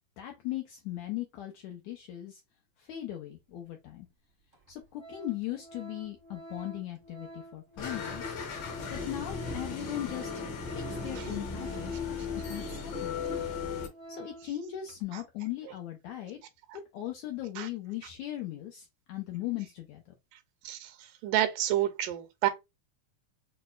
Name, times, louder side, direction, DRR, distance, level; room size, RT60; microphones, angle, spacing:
voice 1, 0.2-2.4 2.8-4.1 4.7-8.4 8.9-10.3 10.7-11.9 12.3-13.4 14.1-16.4 16.9-20.1, left 13 dB, 80° left, 1.7 m, -38 dB
Organ, 3.9-4.0 4.5-4.7 4.9-14.5 14.9-15.0, right 1 dB, 35° right, 0.7 m, -48 dB
sound 1, 7.8-13.9, left 5 dB, 65° left, 1.8 m, -36 dB
voice 2, 21.2-22.5, right 13 dB, 80° right, 2.1 m, -28 dB
6.0 x 2.1 x 2.3 m
omnidirectional pair, 3.8 m